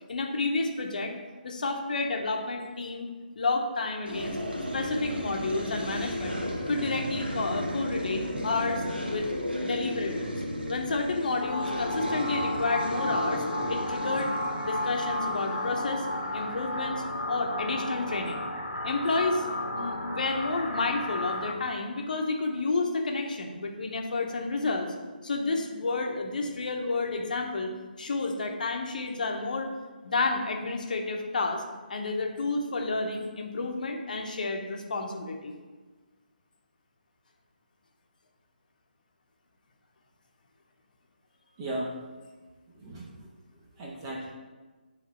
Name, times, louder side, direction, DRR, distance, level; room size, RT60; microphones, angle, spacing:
voice 1, 0.1-1.1 1.4-3.1 3.4-4.4 4.7-8.8 9.1-9.2 9.6-10.3 10.7-14.4 14.6-16.1 16.3-18.4 18.8-19.4 19.7-24.9 25.2-29.7 30.0-31.6 31.9-35.5, left 3 dB, 55° left, 3 dB, 0.9 m, -30 dB
sound 1, 4.1-17.0, equal, 80° right, 1.3 m, -35 dB
sound 2, 11.4-21.5, left 1 dB, 85° left, 1.1 m, -33 dB
voice 2, 41.6-41.9 42.7-44.3, right 1 dB, 25° right, -2 dB, 1.1 m, -37 dB
9.4 x 3.4 x 4.4 m, 1.3 s
figure-of-eight pair, 145°, 5 cm